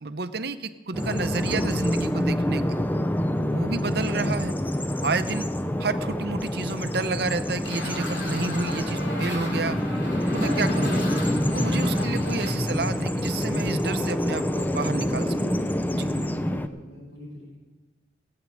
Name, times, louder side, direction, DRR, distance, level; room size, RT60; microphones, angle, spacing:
voice 1, 0.0-2.8 3.5-4.5 5.0-5.5 5.8-9.8 10.3-11.1 11.5-15.4 15.9-16.1, right 3 dB, 55° right, 10 dB, 0.7 m, -30 dB
Bird vocalization bird call bird song, 0.9-16.7, equal, 10° left, 0.4 m, -26 dB
sound 1, 7.6-12.5, left 1 dB, 70° left, 3.0 m, -36 dB
voice 2, 16.0-17.5, left 1 dB, 85° left, -4 dB, 5.8 m, -42 dB
16.5 x 8.8 x 6.3 m, 1.2 s
head